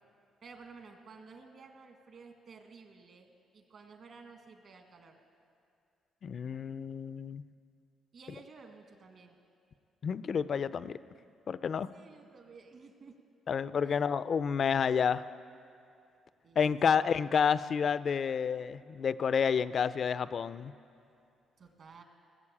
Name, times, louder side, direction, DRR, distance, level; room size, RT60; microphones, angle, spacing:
voice 1, 0.4-3.3 3.5-5.2 8.1-9.4 11.9-13.2 13.8-14.1 16.4-16.9 21.6-22.0, right 4 dB, 60° right, 4 dB, 1.8 m, -53 dB
voice 2, 6.2-7.4 10.0-11.0 11.5-11.9 13.5-15.2 16.6-20.7, left 7 dB, 50° left, 15 dB, 0.4 m, -29 dB
18.0 x 7.1 x 8.7 m, 2.5 s
cardioid pair, 90°, 0 cm